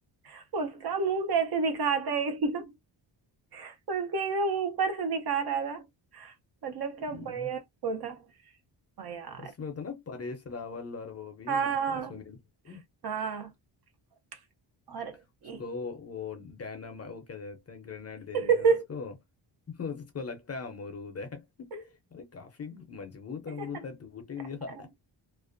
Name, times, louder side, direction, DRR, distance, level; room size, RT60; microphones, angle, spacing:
voice 1, 0.2-2.7 3.5-5.8 6.1-6.3 6.6-8.2 9.0-9.5 11.5-12.2 13.0-13.5 14.9-15.2 15.4-15.6 18.3-18.8 23.6-23.7, right 5 dB, 55° right, 0.6 m, -29 dB
voice 2, 7.1-7.5 9.4-12.4 12.6-12.8 15.6-19.1 19.7-24.9, left 5 dB, 35° left, 0.5 m, -40 dB
2.4 x 2.1 x 2.4 m
wide cardioid pair, 175°, 48 cm